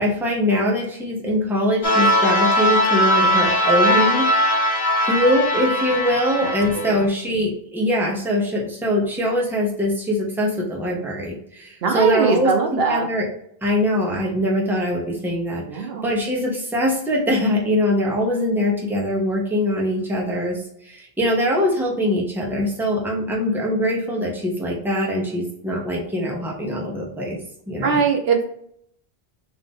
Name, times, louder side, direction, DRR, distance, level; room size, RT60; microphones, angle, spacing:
voice 1, 0.0-4.3 5.0-13.3 13.6-20.6 20.8-27.4 27.7-28.0, equal, ahead, -2 dB, 0.9 m, -22 dB
sound 1, 1.8-7.0, equal, 80° left, 1.1 m, -20 dB
voice 2, 6.4-7.1 11.8-13.1 15.7-16.1 27.8-28.4, right 5 dB, 75° right, 4 dB, 0.9 m, -21 dB
4.1 x 2.8 x 3.7 m, 0.69 s
omnidirectional pair, 1.0 m